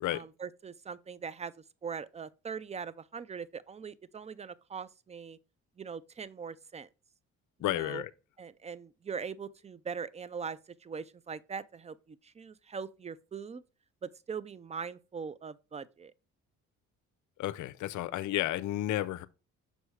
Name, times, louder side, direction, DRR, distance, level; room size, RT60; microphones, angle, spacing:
voice 1, 0.1-1.5 1.8-5.4 5.8-6.9 7.6-8.0 8.4-13.6 14.0-16.1, right 6 dB, 20° right, 0.4 m, -41 dB
voice 2, 7.6-8.1 17.4-19.3, left 14 dB, 80° left, 0.6 m, -32 dB
6.4 x 4.8 x 3.2 m
cardioid pair, 90°, 30 cm